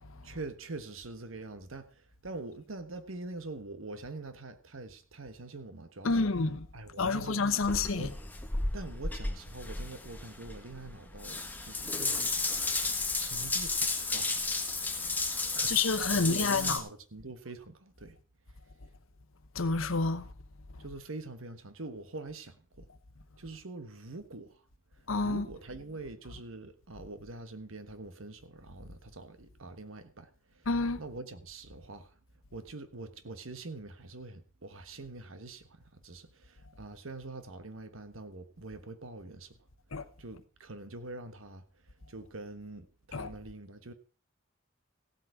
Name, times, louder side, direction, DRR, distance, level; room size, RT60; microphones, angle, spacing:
voice 1, 0.2-6.3 6.7-8.1 8.7-12.6 13.2-14.4 15.3-15.7 16.1-18.2 20.8-22.9 23.4-24.6 25.2-30.7 31.0-32.2 32.5-39.6 40.2-41.7 42.1-43.9, right 2 dB, 80° right, 1.3 m, -44 dB
voice 2, 6.0-6.7 7.0-8.1 15.7-16.8 19.5-20.3 25.1-25.4 30.7-31.0 39.9-40.0 43.1-43.3, left 3 dB, 85° left, 1.0 m, -29 dB
Water tap faucet / Bathtub (filling or washing) / Drip, 7.6-16.8, left 3 dB, 10° left, 1.4 m, -33 dB
15.5 x 8.1 x 4.8 m
head